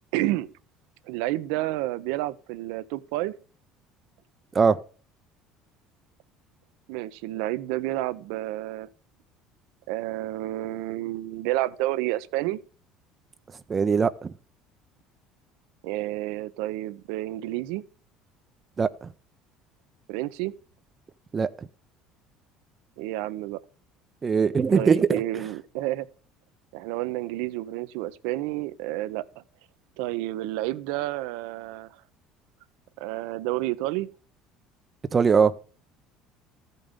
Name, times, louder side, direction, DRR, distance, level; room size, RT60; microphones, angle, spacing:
voice 1, 0.1-0.5 1.1-3.3 6.9-8.9 9.9-12.6 15.8-17.8 20.1-20.5 23.0-23.6 24.7-26.1 26.7-29.2 30.0-32.0 33.0-34.1, right 16 dB, 80° right, 0.5 m, -30 dB
voice 2, 13.7-14.3 18.8-19.1 21.3-21.5 24.2-25.2 35.1-35.5, right 5 dB, 30° right, 0.4 m, -21 dB
14.0 x 5.3 x 3.6 m
supercardioid pair, 110°, 0 cm